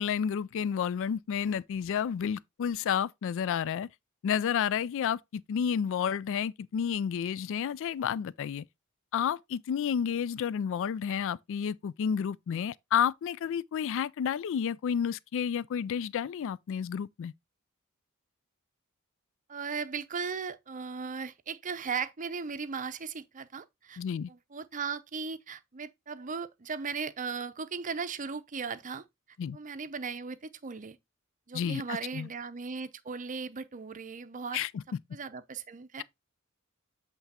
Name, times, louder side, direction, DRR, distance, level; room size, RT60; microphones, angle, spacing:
voice 1, 0.0-3.9 4.2-8.6 9.1-17.3 24.0-24.3 29.4-29.6 31.5-32.3 34.5-34.8, left 8 dB, 65° left, 0.3 m, -31 dB
voice 2, 19.5-24.0 24.3-29.0 29.5-31.0 31.5-34.6 35.1-36.0, right 5 dB, 40° right, 0.6 m, -37 dB
8.1 x 3.3 x 4.2 m
head